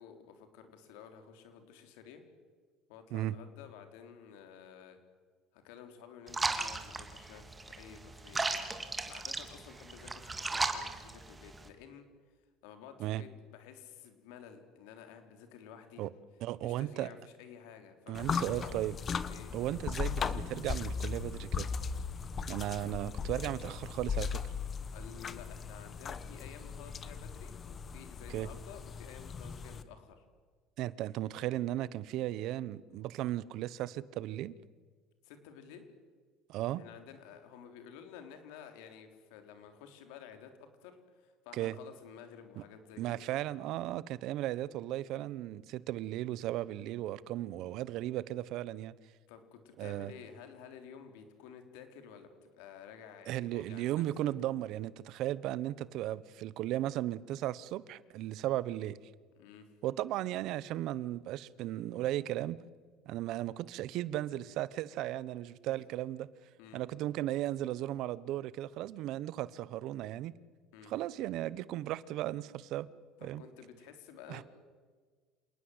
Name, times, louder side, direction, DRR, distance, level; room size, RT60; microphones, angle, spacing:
voice 1, 0.0-2.2 2.9-5.0 5.5-12.1 12.6-16.0 16.6-18.9 19.3-19.5 24.9-30.2 35.2-35.9 36.8-43.3 49.3-54.1 59.4-59.7 65.7-65.8 66.6-66.8 70.7-70.9 73.2-74.4, left 8 dB, 85° left, 7 dB, 3.6 m, -52 dB
sound 1, 6.3-11.7, right 3 dB, 15° right, 2.5 m, -36 dB
voice 2, 16.4-17.1 18.1-18.9 19.5-21.7 22.5-24.4 28.3-28.5 30.8-34.6 36.5-36.8 41.5-41.8 43.0-48.9 49.8-50.1 53.3-59.0 59.8-62.6 63.1-66.3 66.7-70.3 70.9-72.9 73.2-73.4 74.3-74.4, right 14 dB, 65° right, 19 dB, 0.9 m, -36 dB
sound 2, 18.1-29.8, left 6 dB, 35° left, 1.4 m, -38 dB
27.5 x 19.0 x 8.0 m, 1.5 s
cardioid pair, 115°, 0 cm